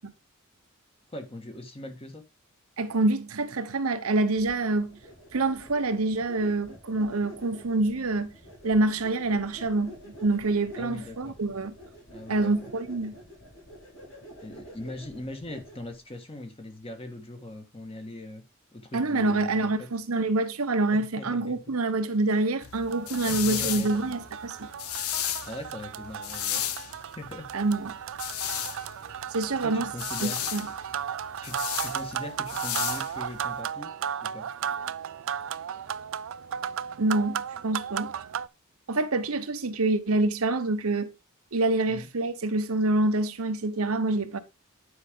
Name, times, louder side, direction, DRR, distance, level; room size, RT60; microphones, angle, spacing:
voice 1, 1.1-2.2 10.8-11.4 12.1-12.7 14.4-18.4 18.7-19.9 20.9-21.6 23.3-24.0 25.4-26.6 27.1-27.5 29.6-30.4 31.4-33.9 34.2-34.5 41.9-42.1, left 1 dB, 25° left, 1.6 m, -40 dB
voice 2, 2.8-5.0 5.3-8.3 8.6-11.7 12.3-13.1 18.9-24.7 27.5-28.0 29.3-29.9 30.2-30.6 37.0-38.1 38.9-41.1 41.5-44.4, right 2 dB, 80° right, 1.0 m, -26 dB
sound 1, 4.3-16.0, equal, 70° left, 4.6 m, -48 dB
sound 2, 22.6-33.6, left 11 dB, 90° left, 0.8 m, -34 dB
sound 3, 22.9-38.5, right 8 dB, 65° right, 0.4 m, -35 dB
9.7 x 5.0 x 3.7 m
head